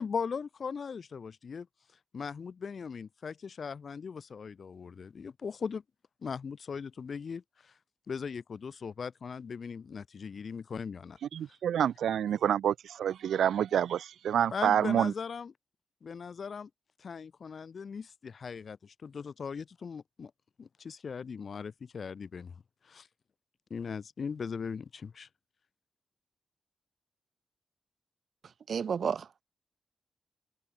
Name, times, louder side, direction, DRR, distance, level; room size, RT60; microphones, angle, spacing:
voice 1, 0.0-1.7 2.1-5.8 6.2-7.7 8.1-11.2 14.5-15.5 16.0-16.7 17.0-20.3 20.6-22.5 22.8-23.1 23.7-25.3, left 6 dB, 65° left, 1.8 m, -39 dB
voice 2, 11.3-15.1, right 9 dB, 85° right, 0.7 m, -28 dB
voice 3, 28.7-29.4, right 6 dB, 70° right, 2.6 m, -31 dB
supercardioid pair, 50°, 0 cm